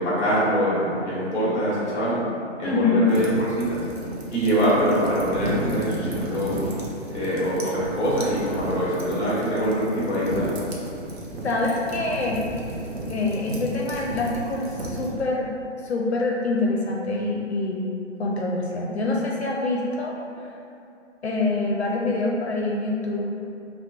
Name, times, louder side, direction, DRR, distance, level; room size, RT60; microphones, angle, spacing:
voice 1, 0.0-2.2 2.6-3.8 4.3-6.6 7.1-10.6, equal, 10° left, -9 dB, 0.7 m, -24 dB
voice 2, 2.6-3.2 11.4-12.6 13.0-15.5 15.8-17.9 18.2-20.1 21.2-23.4, left 2 dB, 60° left, -2 dB, 0.5 m, -25 dB
sound 1, 3.1-15.1, right 1 dB, 55° right, 0.6 m, -35 dB
sound 2, 5.3-7.0 7.8-9.4 10.3-11.4 11.7-13.2 13.8-15.6, equal, 30° right, 1.3 m, -35 dB
4.3 x 2.2 x 2.3 m, 2.6 s
figure-of-eight pair, 140°, 38 cm